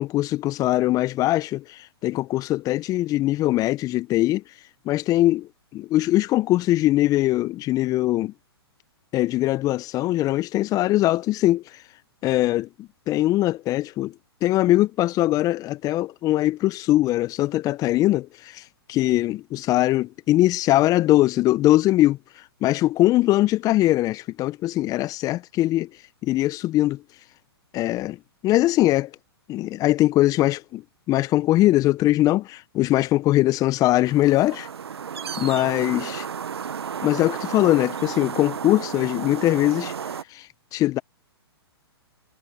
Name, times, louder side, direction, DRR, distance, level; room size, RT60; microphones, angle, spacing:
voice 1, 0.0-4.4 4.8-8.3 9.1-11.6 12.2-14.1 14.4-18.6 18.9-22.2 22.6-25.9 26.2-27.0 27.7-28.2 28.4-29.1 29.5-30.8 31.1-34.7 35.4-36.3 37.0-39.9 40.3-40.5 40.7-41.0, left 16 dB, 25° left, 1.5 m, -21 dB
sound 1, 34.0-40.2, right 7 dB, 70° right, 1.8 m, -33 dB
figure-of-eight pair, 120°, 14 cm